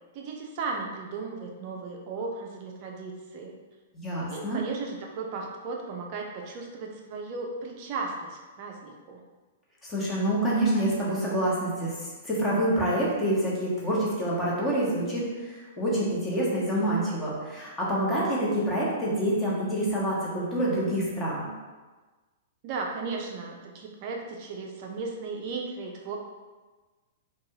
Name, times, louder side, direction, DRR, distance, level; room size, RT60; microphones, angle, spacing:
voice 1, 0.1-3.6 4.3-9.2 22.6-26.2, right 4 dB, 45° right, 0 dB, 0.4 m, -36 dB
voice 2, 3.9-4.6 9.8-21.5, right 1 dB, 15° left, -6 dB, 0.9 m, -27 dB
2.6 x 2.2 x 2.8 m, 1.3 s
hypercardioid pair, 110°, 0 cm